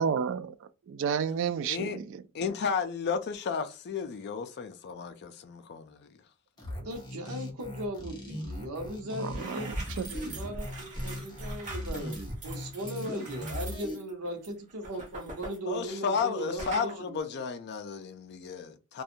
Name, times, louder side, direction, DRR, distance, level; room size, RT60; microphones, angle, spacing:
voice 1, 0.0-0.5 0.9-2.2 9.2-10.3, right 7 dB, 60° right, 0.3 m, -31 dB
voice 2, 1.7-2.0 2.3-6.1 15.7-19.0, left 6 dB, 50° left, 0.4 m, -33 dB
sound 1, 6.6-14.0, left 1 dB, 20° left, 0.8 m, -39 dB
voice 3, 6.7-9.8 10.1-17.2, right 1 dB, 80° right, 0.8 m, -38 dB
sound 2, 8.8-8.9 9.2-16.3 16.6-16.9, right 1 dB, 35° right, 0.8 m, -41 dB
2.5 x 2.3 x 2.7 m
head